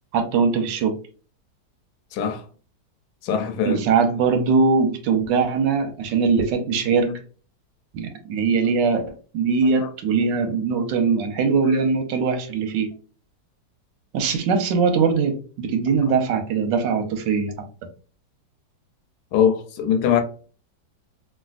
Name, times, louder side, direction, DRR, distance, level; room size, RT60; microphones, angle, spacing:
voice 1, 0.1-1.0 3.7-7.2 7.9-9.1 9.3-12.9 14.1-17.5, right 5 dB, 90° right, 1.3 m, -21 dB
voice 2, 2.1-2.4 3.2-3.8 9.7-9.9 19.3-20.2, left 8 dB, 75° left, 1.2 m, -21 dB
3.2 x 2.5 x 2.4 m
omnidirectional pair, 1.9 m